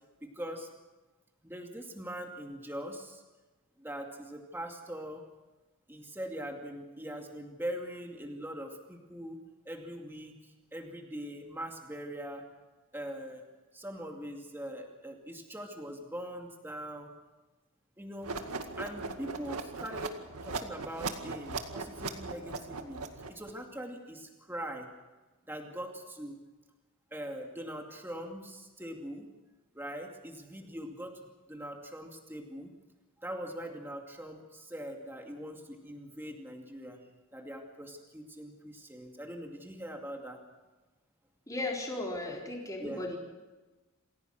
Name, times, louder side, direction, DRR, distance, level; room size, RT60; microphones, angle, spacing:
voice 1, 0.2-0.7 1.4-3.2 3.8-5.2 5.9-9.4 9.6-12.4 12.9-13.4 13.7-17.1 18.0-18.4 18.8-20.2 20.4-24.9 25.5-26.4 27.1-29.3 29.7-32.7 33.2-37.0 37.3-40.4 42.8-43.1, equal, 10° right, 2 dB, 2.4 m, -42 dB
sound 1, 18.2-23.5, right 4 dB, 85° right, 2.0 m, -38 dB
voice 2, 41.5-43.2, left 2 dB, 15° left, -2 dB, 4.3 m, -36 dB
27.5 x 16.5 x 6.5 m, 1.2 s
head